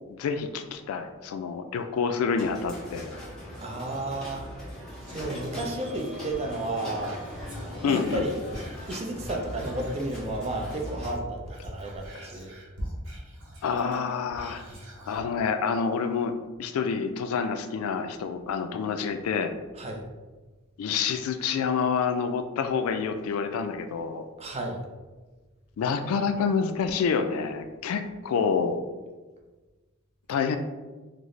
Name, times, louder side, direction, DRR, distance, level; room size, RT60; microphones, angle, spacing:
voice 1, 0.1-3.1 7.8-8.3 13.6-14.6 15.1-19.5 20.8-24.3 25.8-28.8 30.3-30.6, left 6 dB, 90° left, 9 dB, 0.3 m, -28 dB
sound 1, 2.4-11.2, left 1 dB, 5° left, 0.8 m, -40 dB
voice 2, 3.6-4.4 5.1-7.2 7.9-8.4 8.9-12.5 14.7-14.9 19.8-20.1 24.4-24.8, right 1 dB, 30° right, 1 dB, 0.4 m, -32 dB
Whispering, 5.0-11.0 11.3-15.3 15.7-15.8, equal, 75° right, 0.9 m, -43 dB
3.9 x 2.0 x 3.1 m, 1.3 s
head